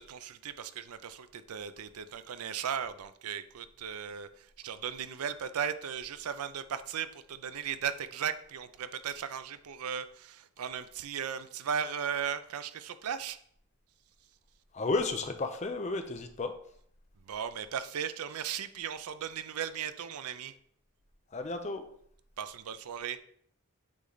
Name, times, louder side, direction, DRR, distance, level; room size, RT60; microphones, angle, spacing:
voice 1, 0.0-13.4 17.3-20.5 22.4-23.2, right 8 dB, 80° right, 12 dB, 0.5 m, -37 dB
voice 2, 14.7-16.5 21.3-21.9, left 3 dB, 30° left, 7 dB, 0.5 m, -32 dB
8.5 x 3.2 x 3.9 m, 0.64 s
head